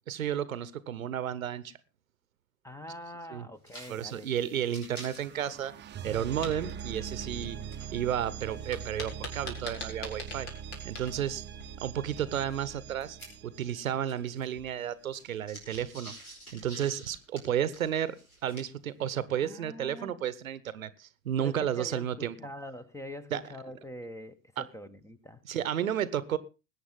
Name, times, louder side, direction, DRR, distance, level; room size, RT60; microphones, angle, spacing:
voice 1, 0.1-1.7 3.3-3.5 3.9-5.7 6.0-7.6 7.9-10.5 10.8-11.4 11.8-13.2 13.4-16.1 16.5-18.2 18.4-22.4 23.3-23.4 24.6-24.7 25.4-26.4, right 10 dB, 75° right, 1.0 m, -32 dB
voice 2, 2.6-4.3 19.4-20.1 21.4-25.4, equal, 5° left, 1.2 m, -44 dB
sound 1, 3.6-3.9 4.2-4.3 4.6-7.5 7.7-11.4 12.1-13.8 14.0-18.9, right 1 dB, 90° left, 4.9 m, -51 dB
sound 2, 3.8-14.6, right 7 dB, 25° right, 0.9 m, -43 dB
sound 3, 6.2-6.5 8.7-11.9, left 2 dB, 55° left, 4.4 m, -42 dB
20.5 x 8.9 x 3.6 m
figure-of-eight pair, 70°, 42 cm